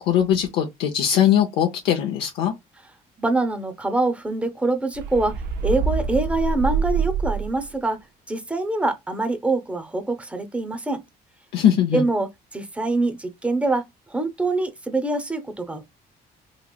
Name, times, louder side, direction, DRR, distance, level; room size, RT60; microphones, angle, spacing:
voice 1, 0.0-2.5 11.5-12.0, left 9 dB, 90° left, 0.6 m, -20 dB
voice 2, 3.2-8.0 8.3-11.0 11.9-15.8, right 2 dB, 5° right, 0.6 m, -25 dB
sound 1, 4.9-7.7, right 4 dB, 85° right, 0.5 m, -25 dB
3.0 x 2.9 x 2.3 m
cardioid pair, 110°, 17 cm